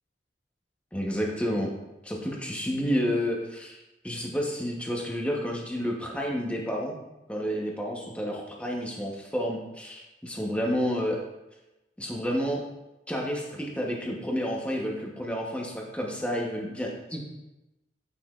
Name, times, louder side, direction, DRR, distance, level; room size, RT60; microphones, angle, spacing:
voice 1, 0.9-1.7 2.0-7.0 7.3-11.2 12.0-12.6 13.1-17.3, equal, 5° left, -1 dB, 0.9 m, -30 dB
8.4 x 5.6 x 2.4 m, 0.98 s
head